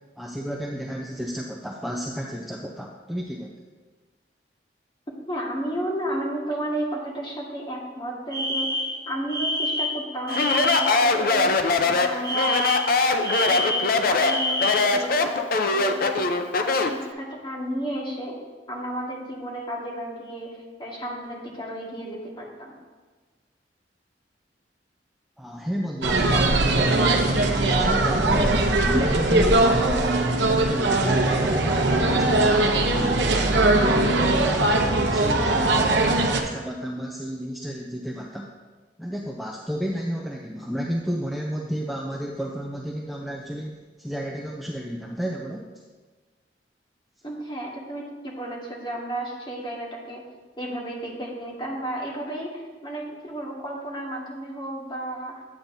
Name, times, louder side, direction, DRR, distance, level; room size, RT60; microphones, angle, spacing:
voice 1, 0.2-3.5 25.4-27.3 27.7-30.1 30.4-33.1 33.6-38.5 39.0-45.7, equal, ahead, -1 dB, 0.5 m, -31 dB
voice 2, 5.3-8.8 9.1-11.6 11.8-16.3 16.6-18.4 18.7-22.7 47.2-50.2 50.6-55.4, right 1 dB, 25° left, -3 dB, 1.7 m, -33 dB
Alarm, 8.3-11.0 12.2-15.0, left 1 dB, 25° right, 2.1 m, -27 dB
Speech, 10.3-17.0, left 3 dB, 55° left, 0.5 m, -22 dB
sound 1, 26.0-36.4, right 2 dB, 80° right, 0.8 m, -20 dB
9.0 x 8.3 x 2.7 m, 1.4 s
head